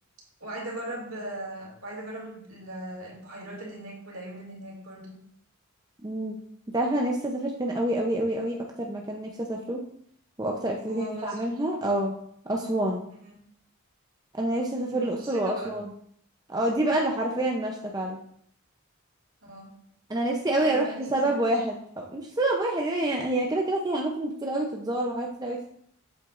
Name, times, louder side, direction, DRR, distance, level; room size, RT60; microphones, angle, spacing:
voice 1, 0.4-5.2 10.8-11.4 13.2-13.5 14.9-15.8 19.4-19.8 20.6-21.5, right 1 dB, 65° right, -2 dB, 2.4 m, -39 dB
voice 2, 6.0-6.4 6.7-9.8 10.4-12.1 12.5-13.0 14.3-15.9 16.5-18.2 20.1-25.7, right 1 dB, 15° right, 0 dB, 0.6 m, -27 dB
7.8 x 7.8 x 2.5 m, 0.66 s
head